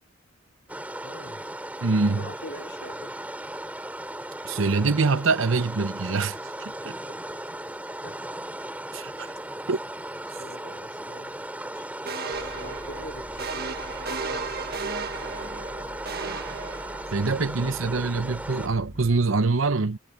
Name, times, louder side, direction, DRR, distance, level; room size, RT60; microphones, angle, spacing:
sound 1, 0.7-18.7, right 1 dB, 10° right, 2.9 m, -37 dB
voice 1, 1.0-1.5 2.1-3.2 8.0-8.2 10.3-11.9 12.2-13.5 17.6-18.3, left 1 dB, 60° left, 3.8 m, -44 dB
voice 2, 1.8-2.2 4.4-6.4 6.7-6.8 8.9-9.3 9.7-9.8 17.1-20.0, right 3 dB, 70° right, 0.8 m, -24 dB
sound 2, 12.1-17.4, right 4 dB, 50° right, 1.7 m, -35 dB
sound 3, 12.3-19.2, equal, 20° left, 7.2 m, -46 dB
head